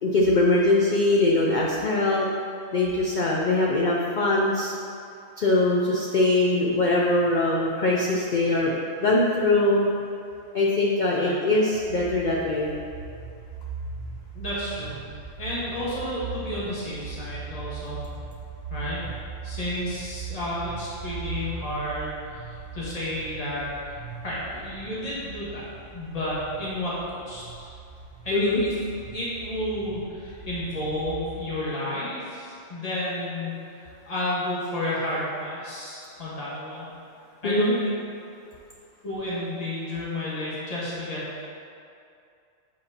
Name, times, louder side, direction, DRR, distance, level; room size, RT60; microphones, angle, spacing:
voice 1, 0.0-2.3 2.7-4.7 5.4-8.7 9.0-9.9 10.5-12.7 28.3-28.6 37.4-37.8, left 2 dB, 60° left, -3 dB, 0.4 m, -22 dB
sound 1, 11.7-31.4, right 4 dB, 70° right, 0.9 m, -40 dB
voice 2, 14.3-15.0 15.4-18.0 18.7-19.0 19.4-25.6 25.9-27.7 28.2-28.7 29.1-36.9 37.4-37.9 39.0-41.3, left 1 dB, 30° left, -8 dB, 1.4 m, -31 dB
7.6 x 4.6 x 2.8 m, 2.5 s
omnidirectional pair, 1.4 m